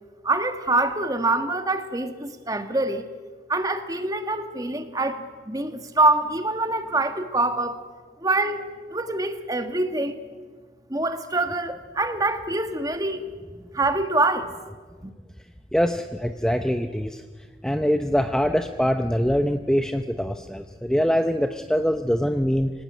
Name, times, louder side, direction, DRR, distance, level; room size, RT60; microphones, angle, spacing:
voice 1, 0.2-3.0 3.5-7.8 8.2-8.6 8.9-10.2 10.9-13.2 13.7-14.5, right 2 dB, 20° right, 8 dB, 1.6 m, -25 dB
voice 2, 15.7-17.2 17.6-22.7, equal, 5° left, 7 dB, 0.6 m, -23 dB
25.5 x 18.5 x 9.3 m, 1.5 s
head